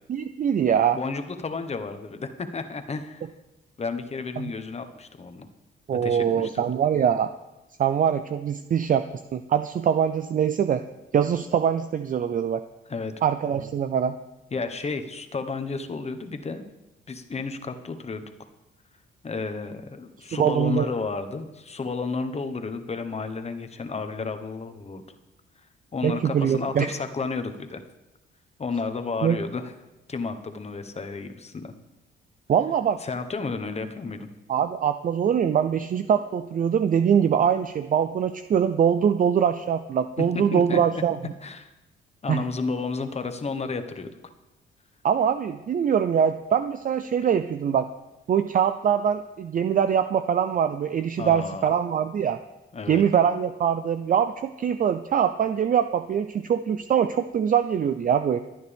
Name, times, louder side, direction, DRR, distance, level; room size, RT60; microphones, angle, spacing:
voice 1, 0.1-1.0 4.4-4.5 5.9-7.3 7.8-9.0 9.3-10.8 11.1-12.6 13.2-14.2 20.3-20.9 26.0-26.9 29.2-29.4 32.5-33.0 34.5-41.3 42.3-42.4 45.0-47.9 48.3-52.4 52.9-58.4, right 8 dB, 45° right, 10 dB, 0.5 m, -23 dB
voice 2, 0.9-3.3 3.8-5.5 6.0-6.6 12.9-13.1 14.5-16.6 17.1-18.3 19.2-25.0 25.9-27.8 28.6-29.7 30.1-31.7 33.0-34.3 40.2-41.0 41.4-41.7 42.2-44.1 51.2-51.7 52.7-53.0, left 4 dB, 30° left, 8 dB, 1.3 m, -32 dB
25.5 x 9.4 x 3.5 m, 0.99 s
cardioid pair, 90°, 20 cm